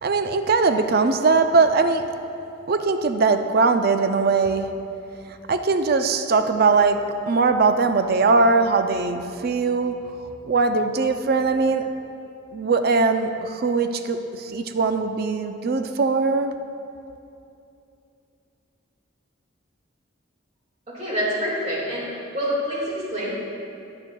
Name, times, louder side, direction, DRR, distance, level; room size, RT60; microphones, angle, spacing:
voice 1, 0.0-2.0 2.7-4.7 5.5-7.0 7.3-9.9 10.5-11.9 12.5-16.5, right 4 dB, 50° right, 8 dB, 0.4 m, -20 dB
voice 2, 20.9-22.1 22.3-23.3, equal, 35° right, -6 dB, 2.0 m, -26 dB
11.0 x 9.7 x 2.3 m, 2.7 s
head